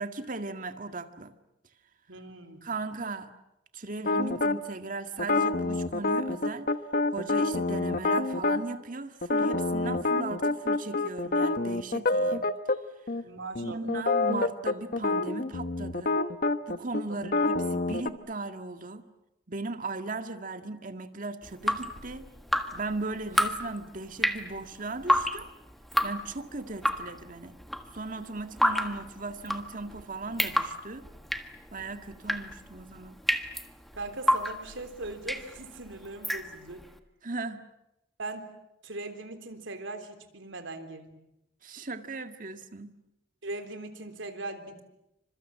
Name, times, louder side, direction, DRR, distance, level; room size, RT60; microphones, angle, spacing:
voice 1, 0.0-1.3 2.6-3.3 3.7-6.7 7.1-12.5 13.6-16.1 16.7-19.0 19.5-22.3 22.7-25.5 26.0-27.5 27.9-31.1 31.7-33.2 37.2-37.6 41.6-43.0, right 3 dB, 45° right, 7 dB, 2.0 m, -37 dB
voice 2, 2.1-2.6 13.2-14.0 17.1-17.2 33.9-36.8 38.2-38.5 38.8-41.2 43.4-44.8, right 2 dB, 75° right, 8 dB, 3.5 m, -40 dB
sound 1, 4.0-4.6 5.2-8.6 9.2-12.8 13.1-13.2 13.5-18.1, left 2 dB, 50° left, 1.2 m, -27 dB
Drip, 21.4-36.9, equal, ahead, 1.5 m, -31 dB
28.5 x 26.0 x 7.6 m, 0.88 s
head